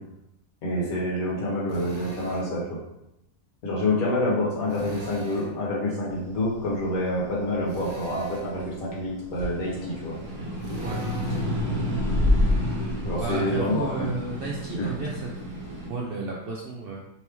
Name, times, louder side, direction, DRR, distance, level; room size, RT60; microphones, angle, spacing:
voice 1, 0.6-2.6 3.6-10.1 13.0-14.3 14.7-14.9, left 1 dB, 85° left, -4 dB, 1.6 m, -27 dB
Drill, 1.7-2.5 4.7-5.6 7.7-8.6 10.6-11.6, right 2 dB, 40° right, 1.0 m, -41 dB
sound 1, 6.3-8.8 9.2-15.9, left 1 dB, 10° right, 1.2 m, -28 dB
voice 2, 13.2-15.4 15.9-17.0, right 3 dB, 65° right, -3 dB, 0.5 m, -32 dB
3.3 x 3.0 x 3.3 m, 0.86 s
omnidirectional pair, 1.5 m